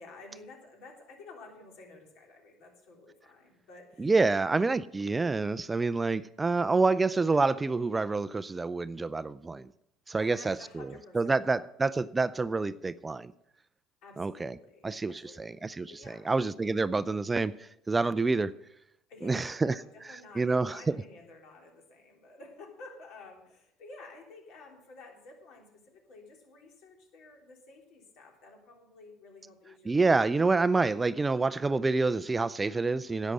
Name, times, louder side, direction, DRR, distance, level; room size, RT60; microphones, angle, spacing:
voice 1, 0.0-4.5 10.2-11.6 14.0-15.6 15.9-16.3 19.1-30.2, left 3 dB, 60° left, 1 dB, 3.4 m, -52 dB
voice 2, 4.0-9.7 10.1-10.9 11.1-13.3 14.2-14.5 14.8-17.5 17.9-18.5 19.2-19.8 20.1-20.8 29.9-33.3, right 3 dB, 20° right, 16 dB, 0.4 m, -27 dB
11.0 x 9.1 x 6.6 m, 0.80 s
hypercardioid pair, 70°, 0 cm